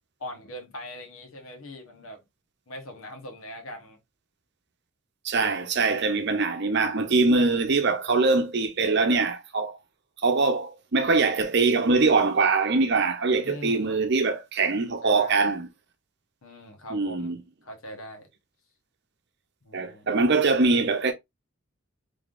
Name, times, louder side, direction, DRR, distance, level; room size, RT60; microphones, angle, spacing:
voice 1, 0.2-2.2 2.7-4.0 13.4-13.9 15.0-15.4 16.4-17.3 17.6-18.3 19.6-20.1, equal, 85° left, 1.0 m, -41 dB
voice 2, 5.2-9.8 10.2-15.7 16.9-17.4 19.7-21.1, right 3 dB, 55° right, 0.7 m, -23 dB
3.6 x 3.4 x 2.5 m
head